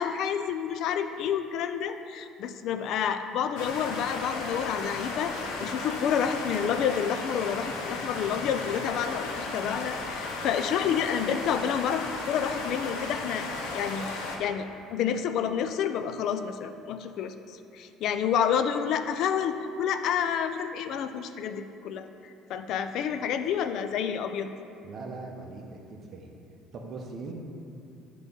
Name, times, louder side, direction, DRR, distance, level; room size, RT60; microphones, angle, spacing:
voice 1, 0.0-5.3 5.6-13.5 13.7-17.3 17.7-22.1 22.5-24.5, left 8 dB, 55° left, 9 dB, 0.3 m, -29 dB
sound 1, 3.6-14.4, left 3 dB, 85° left, 0.8 m, -35 dB
voice 2, 24.8-26.3 26.7-27.3, right 3 dB, 40° right, 1 dB, 0.8 m, -40 dB
8.1 x 3.0 x 5.3 m, 2.6 s
cardioid pair, 145°, 0 cm